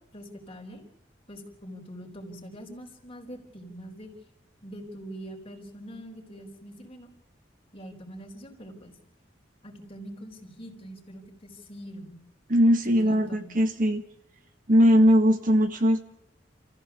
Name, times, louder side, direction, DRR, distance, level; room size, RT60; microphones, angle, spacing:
voice 1, 0.1-0.8 1.3-4.1 4.6-7.1 7.7-8.9 9.6-12.2 13.0-13.5, equal, 35° left, 2 dB, 4.2 m, -43 dB
voice 2, 12.5-14.0 14.7-16.0, equal, 50° right, 6 dB, 1.6 m, -20 dB
28.5 x 15.0 x 7.1 m, 0.81 s
head